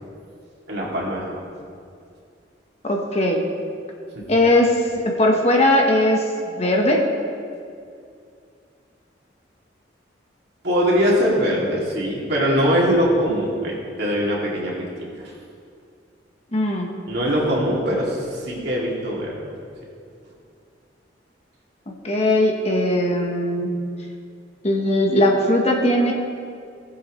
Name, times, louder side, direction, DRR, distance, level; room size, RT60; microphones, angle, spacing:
voice 1, 0.7-1.4 10.6-14.9 17.1-19.3, equal, 65° right, -4 dB, 2.5 m, -22 dB
voice 2, 2.8-3.4 4.3-4.8 5.0-6.2 6.6-7.0 16.5-16.9 22.0-23.7 24.6-26.1, left 1 dB, 35° left, 1 dB, 1.1 m, -19 dB
18.5 x 7.9 x 3.2 m, 2.4 s
head